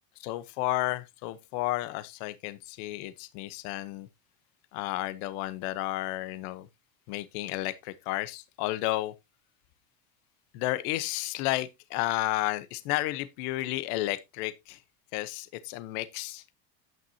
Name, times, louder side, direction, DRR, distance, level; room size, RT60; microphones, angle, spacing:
voice 1, 0.2-4.1 4.7-6.7 7.1-9.1 10.5-14.8 15.1-16.5, left 16 dB, 65° left, 1.0 m, -32 dB
10.5 x 9.2 x 2.8 m
cardioid pair, 160°, 48 cm